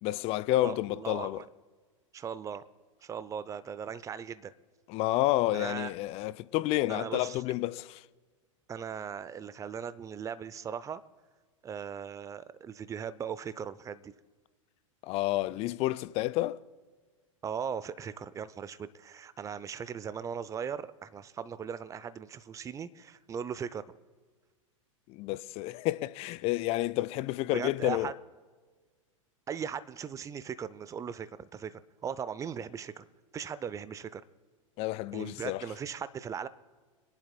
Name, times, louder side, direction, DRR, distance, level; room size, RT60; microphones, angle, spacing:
voice 1, 0.0-1.4 4.9-7.9 15.0-16.6 25.1-28.1 34.8-35.6, left 16 dB, 35° left, 0.4 m, -30 dB
voice 2, 0.6-1.5 2.1-2.6 3.0-4.5 5.5-5.9 6.9-7.4 8.7-11.0 11.6-14.1 17.4-23.8 27.5-28.1 29.5-33.0 33.3-34.2 35.1-36.5, right 7 dB, 20° right, 0.5 m, -38 dB
30.0 x 10.5 x 2.2 m
figure-of-eight pair, 90°, 17 cm